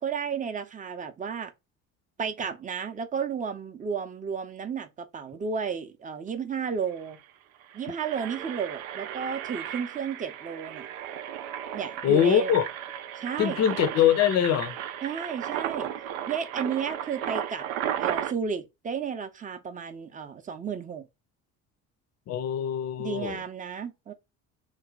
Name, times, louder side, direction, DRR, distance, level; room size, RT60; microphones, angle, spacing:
voice 1, 0.0-1.5 2.2-7.2 7.7-10.9 11.7-12.5 13.2-13.6 15.0-15.9 16.3-17.6 18.0-21.1 23.0-24.1, right 6 dB, 20° right, 0.6 m, -33 dB
Engine, 6.6-6.7 6.9-7.1 7.6-18.3, right 10 dB, 70° right, 0.5 m, -35 dB
voice 2, 12.0-12.7 13.4-14.8 22.3-23.4, left 10 dB, 40° left, 0.6 m, -23 dB
3.1 x 2.2 x 3.7 m
figure-of-eight pair, 55°, 42 cm